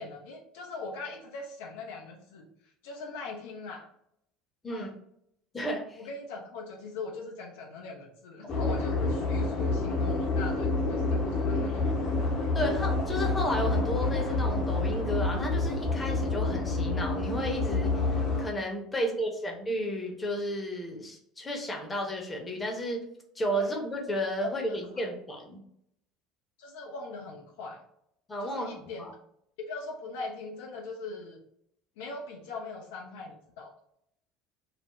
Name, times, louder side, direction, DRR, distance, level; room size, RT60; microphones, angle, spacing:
voice 1, 0.0-2.5 2.8-3.9 4.7-4.9 6.0-11.9 18.9-19.2 23.6-23.7 24.4-25.1 26.6-27.8 28.4-29.1 29.6-31.4 32.0-33.7, left 3 dB, 70° left, 0 dB, 0.4 m, -41 dB
voice 2, 5.5-6.0 12.5-23.0 23.4-25.6 28.3-29.1, equal, 20° left, 1 dB, 0.7 m, -33 dB
sound 1, 8.5-18.4, left 3 dB, 50° left, 0.8 m, -28 dB
2.4 x 2.0 x 3.0 m, 0.73 s
figure-of-eight pair, 65°, 0 cm